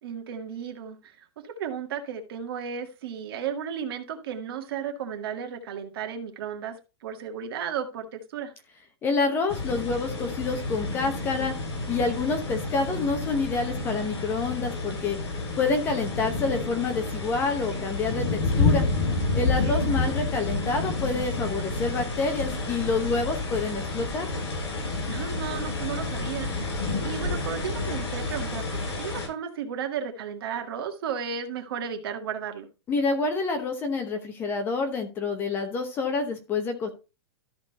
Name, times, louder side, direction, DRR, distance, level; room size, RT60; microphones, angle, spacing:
voice 1, 0.0-6.8 7.0-8.5 19.4-19.9 25.1-26.7 27.0-32.7, right 7 dB, 55° right, 1.9 m, -34 dB
voice 2, 9.0-11.5 11.9-15.2 15.6-18.9 19.3-24.3 32.9-36.9, left 4 dB, 15° left, 0.9 m, -28 dB
sound 1, 9.5-29.3, left 3 dB, 70° left, 5.9 m, -29 dB
13.0 x 4.4 x 4.1 m
supercardioid pair, 175°, 15 cm